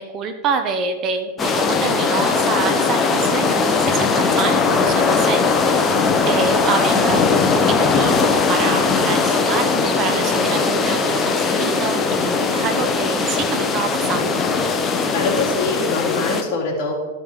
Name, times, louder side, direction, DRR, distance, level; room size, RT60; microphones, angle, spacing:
voice 1, 0.0-5.9 6.3-7.5 7.8-14.4, right 5 dB, 35° right, 7 dB, 0.7 m, -26 dB
sound 1, 1.4-16.4, left 4 dB, 20° left, 0.8 m, -19 dB
voice 2, 15.1-17.0, left 3 dB, 50° left, -3 dB, 2.9 m, -23 dB
14.0 x 5.2 x 3.7 m, 1.4 s
supercardioid pair, 140°, 0 cm